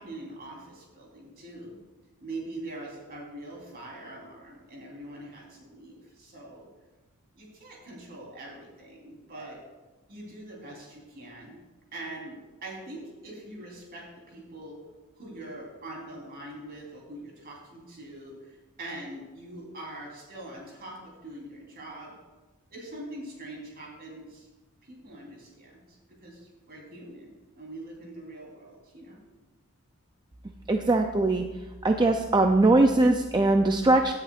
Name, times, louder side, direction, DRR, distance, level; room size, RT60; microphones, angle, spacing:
voice 1, 0.0-1.8 2.2-6.7 7.4-9.6 10.1-11.6 11.9-14.8 15.2-22.1 22.7-24.5 24.9-25.8 26.1-29.2, right 1 dB, 45° right, -2 dB, 3.8 m, -43 dB
voice 2, 30.7-31.5 31.8-34.1, right 2 dB, 20° right, 4 dB, 0.5 m, -21 dB
17.0 x 9.7 x 2.5 m, 1.2 s
head